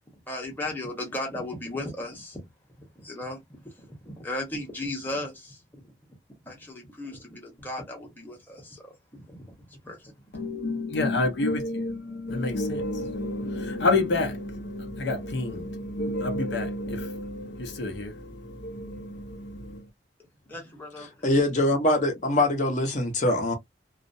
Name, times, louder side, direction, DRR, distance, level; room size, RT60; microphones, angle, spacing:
voice 1, 0.1-2.4 2.9-5.8 6.4-10.5 20.5-21.3, left 1 dB, 10° left, 0.9 m, -36 dB
voice 2, 10.3-19.9, left 2 dB, 80° left, 0.7 m, -29 dB
voice 3, 21.2-23.5, left 1 dB, 40° left, 0.7 m, -23 dB
2.4 x 2.0 x 2.5 m
head